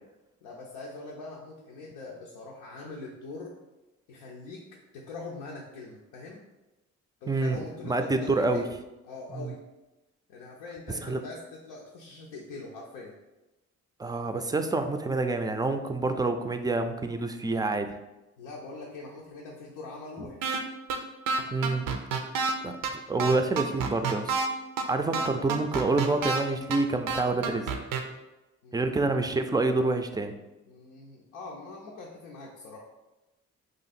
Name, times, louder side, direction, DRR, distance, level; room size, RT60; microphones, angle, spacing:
voice 1, 0.4-3.5 4.1-4.6 4.9-6.4 7.2-8.6 9.0-9.6 10.3-13.1 18.4-20.6 28.6-29.1 30.7-32.8, left 3 dB, 85° left, -3 dB, 0.6 m, -43 dB
voice 2, 7.3-7.6 7.8-8.7 9.3-9.5 11.0-11.2 14.0-17.9 21.5-22.0 22.6-24.3 24.9-27.7 28.7-30.3, right 3 dB, 10° right, 6 dB, 0.3 m, -27 dB
sound 1, 20.4-20.6 20.9-21.0 21.3-22.5 22.8-22.9 23.2-24.5 24.8-24.9 25.1-26.4 26.7-26.8 27.1-28.0, right 5 dB, 80° right, 0.5 m, -28 dB
2.8 x 2.5 x 4.1 m, 1.0 s
supercardioid pair, 50°, 33 cm